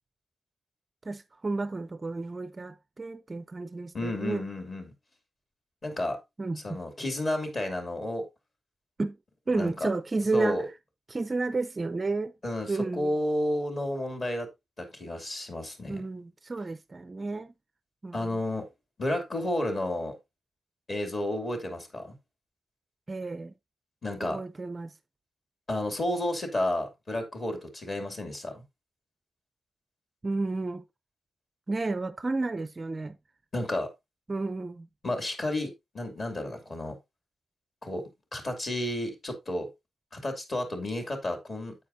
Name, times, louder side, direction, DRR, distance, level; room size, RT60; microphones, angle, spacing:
voice 1, 1.0-4.5 6.4-6.8 9.0-9.2 9.5-10.6 11.1-12.3 12.7-13.2 15.9-17.5 18.0-18.4 23.1-23.5 24.2-25.0 30.2-30.8 31.7-33.2 34.3-34.9, right 3 dB, 20° right, 0.5 m, -31 dB
voice 2, 3.9-4.9 5.8-6.2 6.6-8.3 9.5-9.9 10.3-10.7 12.4-14.5 14.8-16.0 18.1-18.7 19.0-20.2 20.9-22.2 24.0-24.4 25.7-28.6 33.5-33.9 35.0-37.0 37.8-39.7 40.1-41.7, left 1 dB, 35° left, 2.7 m, -31 dB
9.1 x 8.6 x 2.7 m
wide cardioid pair, 165°, 0 cm